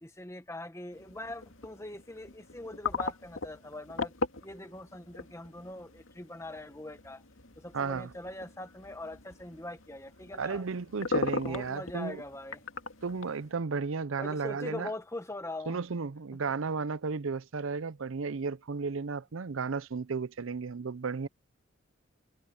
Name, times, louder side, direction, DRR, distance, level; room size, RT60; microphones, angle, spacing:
voice 1, 0.0-4.1 4.4-7.2 7.6-10.6 11.4-12.6 14.2-15.8, left 1 dB, 15° left, 1.4 m, -42 dB
sound 1, 0.9-13.5, left 3 dB, 85° left, 2.3 m, -39 dB
voice 2, 7.7-8.1 10.4-12.2 13.0-14.9 15.7-21.3, right 4 dB, 80° right, 0.6 m, -34 dB
head